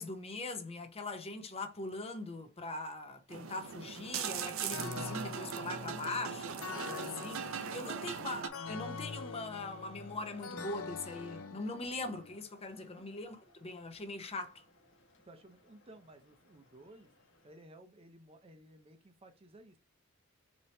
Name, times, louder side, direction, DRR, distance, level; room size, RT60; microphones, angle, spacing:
voice 1, 0.0-14.6, left 2 dB, 30° left, 0.6 m, -41 dB
sound 1, 3.3-8.5, right 7 dB, 70° right, 0.5 m, -40 dB
sound 2, 4.7-12.4, left 4 dB, 90° left, 0.5 m, -45 dB
voice 2, 7.7-8.1 12.8-13.1 15.2-17.1 17.4-19.8, right 1 dB, 30° right, 0.6 m, -56 dB
sound 3, 8.5-17.6, left 1 dB, 65° left, 1.0 m, -59 dB
4.3 x 2.9 x 3.1 m
head